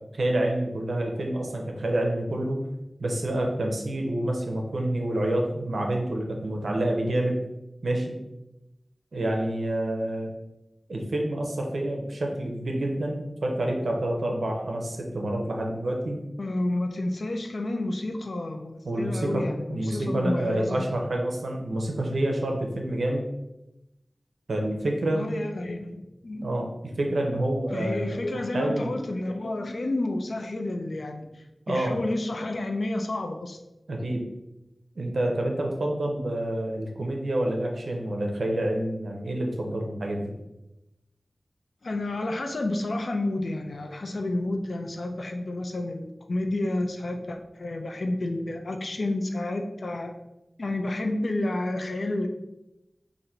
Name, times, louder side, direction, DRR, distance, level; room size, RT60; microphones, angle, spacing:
voice 1, 0.1-2.6 3.0-7.4 7.8-8.2 9.1-10.3 10.9-16.2 18.8-23.2 24.5-25.3 26.4-26.7 27.0-28.9 31.7-32.0 33.9-34.3 35.0-40.3, right 1 dB, 90° right, 1 dB, 0.6 m, -28 dB
voice 2, 16.4-20.9 25.2-26.5 27.7-33.6 41.8-50.1 50.6-52.3, left 2 dB, 75° left, 4 dB, 0.5 m, -30 dB
4.1 x 2.6 x 4.3 m, 0.93 s
wide cardioid pair, 50°, 0 cm